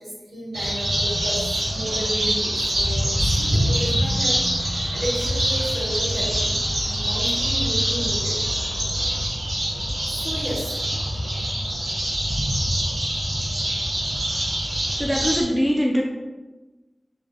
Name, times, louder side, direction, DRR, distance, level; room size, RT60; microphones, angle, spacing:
voice 1, 0.0-8.4 10.0-10.8, equal, 55° right, -7 dB, 1.4 m, -33 dB
sound 1, 0.5-15.4, equal, 85° right, 0.7 m, -24 dB
voice 2, 15.0-16.0, equal, 5° right, -2 dB, 0.3 m, -22 dB
4.5 x 2.2 x 2.6 m, 1.2 s
wide cardioid pair, 80°, 0 cm